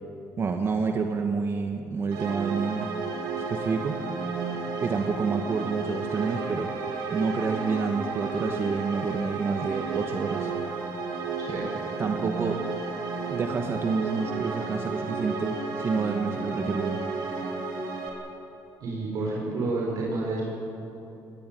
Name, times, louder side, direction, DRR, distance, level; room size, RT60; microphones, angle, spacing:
voice 1, 0.4-2.9 3.5-4.0 4.8-6.7 7.1-10.5 11.5-11.7 12.0-12.6 13.3-17.0, right 5 dB, 35° right, 4 dB, 1.4 m, -28 dB
sound 1, 2.1-18.1, right 4 dB, 85° right, 4.6 m, -32 dB
voice 2, 18.8-20.4, right 3 dB, 60° right, -4 dB, 5.8 m, -29 dB
21.0 x 19.5 x 9.4 m, 3.0 s
cardioid pair, 130°, 7 cm